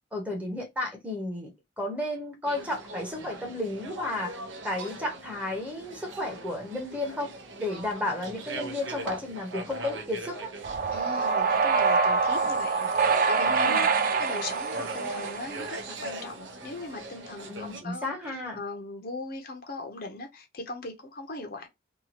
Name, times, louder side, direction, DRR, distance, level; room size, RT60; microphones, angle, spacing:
voice 1, 0.1-1.5 1.8-4.3 4.6-7.3 7.6-10.5 13.4-13.8 17.5-18.6, left 1 dB, 10° right, 0.8 m, -33 dB
sound 1, 2.4-17.8, right 2 dB, 75° right, 0.7 m, -40 dB
sound 2, 10.6-15.9, right 5 dB, 45° right, 0.4 m, -25 dB
voice 2, 10.9-21.7, left 2 dB, 50° left, 0.6 m, -39 dB
2.8 x 2.3 x 2.8 m
head